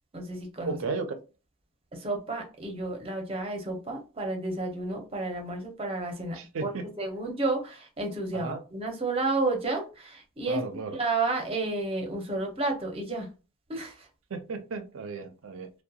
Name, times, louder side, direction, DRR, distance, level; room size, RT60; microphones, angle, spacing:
voice 1, 0.1-0.8 1.9-6.7 7.0-10.6 10.9-13.3 13.7-14.1, right 2 dB, 25° right, 2 dB, 0.6 m, -31 dB
voice 2, 0.6-1.1 6.3-6.9 8.3-8.6 10.4-11.0 14.3-15.7, right 4 dB, 75° right, 7 dB, 0.5 m, -34 dB
2.7 x 2.1 x 2.3 m, 0.32 s
head